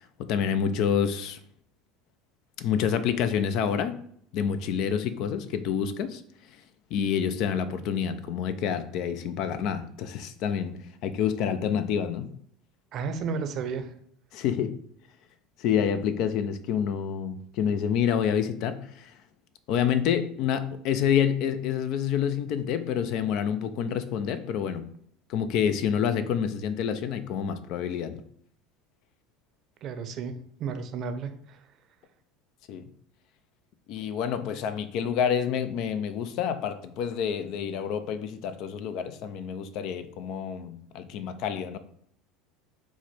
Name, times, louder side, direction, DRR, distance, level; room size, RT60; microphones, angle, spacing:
voice 1, 0.2-1.4 2.6-4.0 4.3-6.2 6.9-12.3 14.3-14.8 15.6-19.2 19.7-24.9 25.3-28.2 32.7-32.9 33.9-41.8, left 8 dB, 60° left, 11 dB, 0.4 m, -28 dB
voice 2, 12.9-13.9 29.8-31.7, right 5 dB, 50° right, 7 dB, 0.6 m, -33 dB
4.5 x 2.1 x 4.2 m, 0.66 s
supercardioid pair, 95°, 0 cm